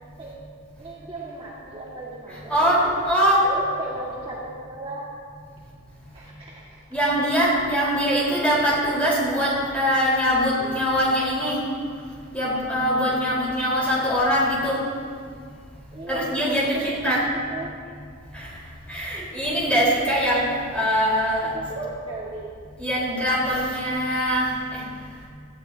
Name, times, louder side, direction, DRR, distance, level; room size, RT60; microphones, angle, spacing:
voice 1, 0.8-3.0 3.4-5.0 6.1-6.6 15.9-16.4 16.7-17.8 21.4-22.5, right 2 dB, 25° right, -7 dB, 2.0 m, -36 dB
voice 2, 2.5-3.4 6.9-11.6 12.3-14.8 16.1-17.2 18.3-18.5 18.9-20.4 20.7-21.5 22.8-24.8, equal, 5° left, -7 dB, 4.2 m, -22 dB
19.0 x 15.5 x 2.8 m, 2.1 s
head